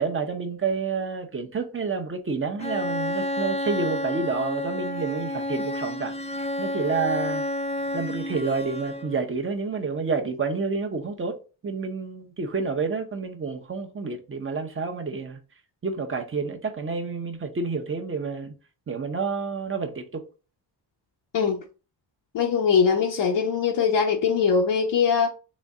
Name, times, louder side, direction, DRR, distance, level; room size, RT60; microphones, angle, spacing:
voice 1, 0.0-6.1 6.6-7.4 7.9-11.4 11.6-15.4 15.8-18.5 18.9-20.2, right 4 dB, 30° right, 0.8 m, -29 dB
Bowed string instrument, 2.6-9.3, left 1 dB, 15° left, 0.5 m, -30 dB
voice 2, 22.3-25.3, left 6 dB, 75° left, 0.9 m, -21 dB
4.1 x 3.1 x 3.6 m
wide cardioid pair, 120°, 44 cm